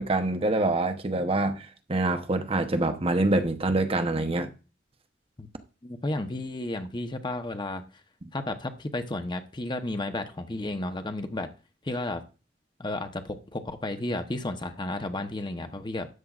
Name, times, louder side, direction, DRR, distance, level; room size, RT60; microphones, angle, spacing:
voice 1, 0.0-4.5, right 2 dB, 35° right, 0.9 m, -25 dB
voice 2, 5.8-7.8 8.3-11.5 11.8-12.2 12.8-16.1, left 2 dB, 25° left, 0.9 m, -32 dB
13.0 x 9.2 x 2.4 m
head